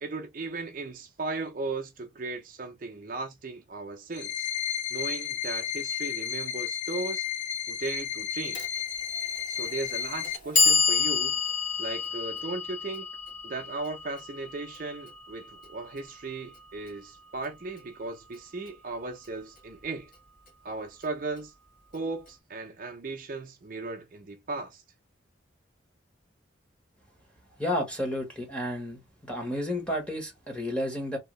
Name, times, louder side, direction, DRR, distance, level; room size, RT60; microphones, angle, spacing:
voice 1, 0.0-4.5 4.9-7.3 7.7-8.6 9.5-11.4 11.8-13.1 13.4-20.1 20.6-21.5 21.9-24.8, right 3 dB, 45° right, 0.5 m, -36 dB
sound 1, 4.1-10.4, left 9 dB, 65° left, 0.5 m, -33 dB
Clock, 8.5-8.7 9.6-9.7 10.2-16.3, left 5 dB, 45° left, 1.3 m, -29 dB
voice 2, 27.6-29.0 29.3-31.2, left 1 dB, 5° left, 1.2 m, -31 dB
2.9 x 2.6 x 3.0 m
head